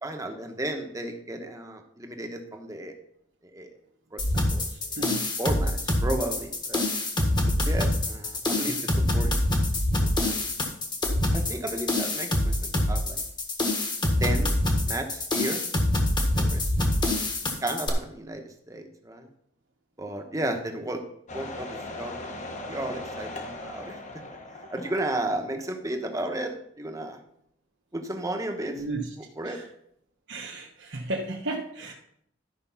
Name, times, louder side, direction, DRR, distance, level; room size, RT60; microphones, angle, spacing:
voice 1, 0.0-2.9 3.4-3.7 4.1-4.9 5.4-6.9 7.5-8.8 9.1-9.3 10.0-10.5 11.3-13.2 14.2-15.7 16.3-17.2 17.6-19.3 20.0-21.0 21.3-24.0 24.7-27.2 27.9-28.8 29.4-29.6, right 1 dB, 15° right, 4 dB, 1.0 m, -34 dB
sound 1, 4.2-17.9, left 1 dB, 25° left, 1.4 m, -25 dB
voice 2, 4.7-5.3 8.6-8.7 28.7-29.1 29.4-29.7 30.3-31.9, right 2 dB, 65° right, -3 dB, 1.1 m, -34 dB
sound 2, 21.3-25.8 26.1-26.2, left 2 dB, 40° left, 1.2 m, -39 dB
12.5 x 5.1 x 5.7 m, 0.70 s
head